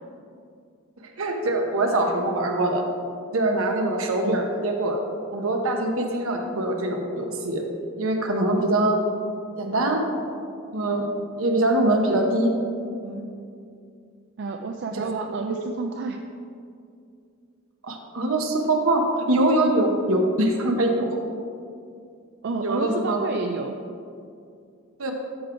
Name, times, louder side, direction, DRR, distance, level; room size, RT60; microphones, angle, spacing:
voice 1, 1.2-2.8 3.3-5.0 5.3-7.6 8.0-9.0 9.6-10.1 10.7-11.1 11.4-12.5 13.0-13.2 14.9-15.1 17.8-21.2 22.6-23.2 25.0-25.1, right 1 dB, 70° right, 2 dB, 1.0 m, -23 dB
voice 2, 14.4-16.2 22.4-23.8, right 4 dB, 55° right, 4 dB, 0.4 m, -30 dB
12.5 x 4.7 x 3.8 m, 2.4 s
head